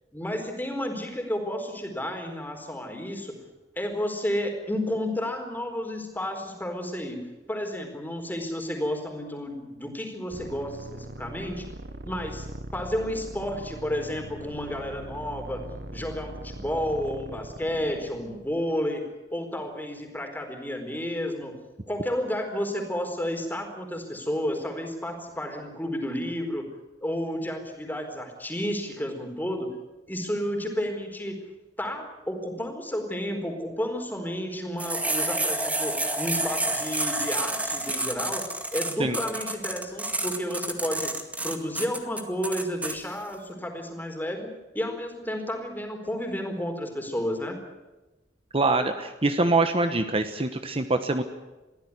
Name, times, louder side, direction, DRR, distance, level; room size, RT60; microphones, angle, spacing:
voice 1, 0.1-3.3 3.8-11.7 12.0-12.5 12.7-15.6 15.9-19.0 19.3-21.5 21.9-26.7 27.0-29.8 30.1-31.4 31.8-38.4 38.7-41.1 41.4-47.6, equal, 10° left, 4 dB, 4.3 m, -31 dB
sound 1, 10.3-18.7, right 1 dB, 70° right, 1.3 m, -40 dB
sound 2, 34.8-43.0, right 2 dB, 10° right, 2.1 m, -29 dB
voice 2, 48.5-51.2, right 2 dB, 35° right, 8 dB, 1.2 m, -24 dB
23.0 x 15.5 x 9.7 m, 1.1 s
head